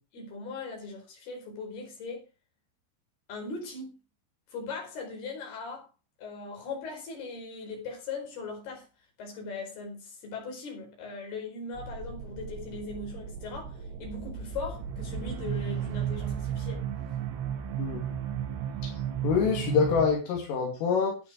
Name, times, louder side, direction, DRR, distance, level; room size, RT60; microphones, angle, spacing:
voice 1, 0.1-2.3 3.3-4.0 4.5-5.9 6.2-8.9 9.2-16.9, left 3 dB, 50° left, 6.4 m, -39 dB
sound 1, 11.7-20.1, right 9 dB, 65° right, 3.7 m, -34 dB
voice 2, 19.2-21.2, left 6 dB, 80° left, 5.1 m, -26 dB
13.0 x 9.0 x 4.7 m
omnidirectional pair, 5.8 m